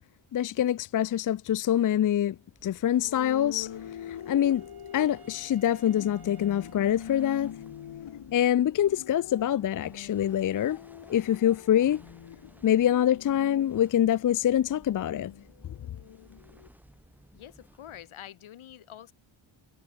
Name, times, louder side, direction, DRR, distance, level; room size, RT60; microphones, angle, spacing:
voice 1, 0.3-2.4 2.6-3.7 4.1-4.6 4.9-7.6 8.3-10.8 11.1-12.0 12.6-15.3, left 11 dB, 40° left, 0.5 m, -25 dB
sound 1, 2.4-18.3, right 1 dB, 5° right, 3.4 m, -57 dB
sound 2, 3.0-16.7, left 10 dB, 70° left, 3.6 m, -45 dB
Wind instrument woodwind instrument, 3.1-7.9, right 7 dB, 50° right, 6.0 m, -56 dB
voice 2, 17.3-19.1, left 11 dB, 85° left, 5.5 m, -46 dB
cardioid pair, 120°, 47 cm